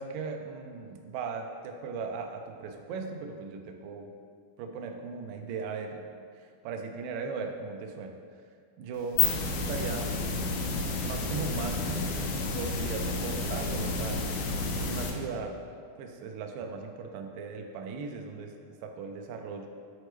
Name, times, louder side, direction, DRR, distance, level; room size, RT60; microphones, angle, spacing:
voice 1, 0.0-4.1 4.6-8.2 8.8-9.2 9.5-10.1 11.0-14.4 14.7-15.6 16.0-19.7, right 4 dB, 90° right, 4 dB, 2.2 m, -38 dB
sound 1, 8.9-15.1, left 3 dB, 85° left, 2.3 m, -30 dB
8.0 x 4.2 x 3.2 m, 2.1 s
omnidirectional pair, 3.8 m